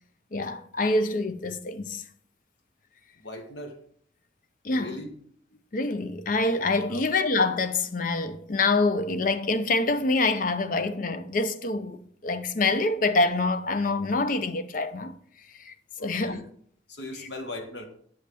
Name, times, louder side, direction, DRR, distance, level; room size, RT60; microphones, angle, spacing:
voice 1, 0.3-2.0 4.6-5.0 5.7-15.2 15.5-15.7 16.0-16.5, left 3 dB, 45° left, 0.5 m, -26 dB
voice 2, 3.2-3.8 4.7-5.1 6.9-7.1 16.0-16.4 16.9-17.9, left 1 dB, 65° left, 1.2 m, -39 dB
9.0 x 5.5 x 3.4 m
head